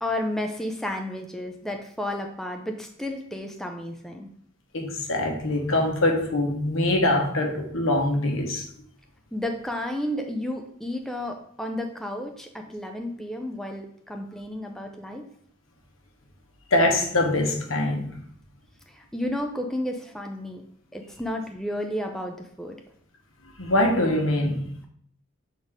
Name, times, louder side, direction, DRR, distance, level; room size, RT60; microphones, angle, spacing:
voice 1, 0.0-4.3 9.3-15.2 18.9-20.6 20.9-22.8, left 1 dB, ahead, 0.5 m, -32 dB
voice 2, 4.7-8.6 16.7-18.2 23.6-24.6, left 1 dB, 80° left, 1.2 m, -23 dB
6.6 x 4.0 x 3.6 m
head